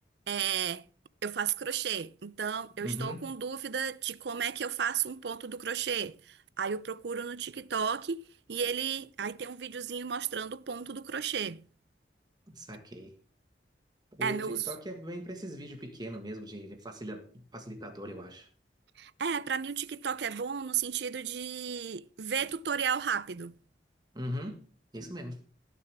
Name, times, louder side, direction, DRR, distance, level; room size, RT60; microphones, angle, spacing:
voice 1, 0.3-0.8 1.2-8.2 8.5-11.6 14.2-14.7 19.0-23.5, right 7 dB, 65° right, 0.6 m, -33 dB
voice 2, 2.8-3.2 12.5-13.1 14.1-18.5 24.1-24.6 24.9-25.4, equal, 25° right, 1.7 m, -40 dB
18.5 x 6.9 x 3.6 m
head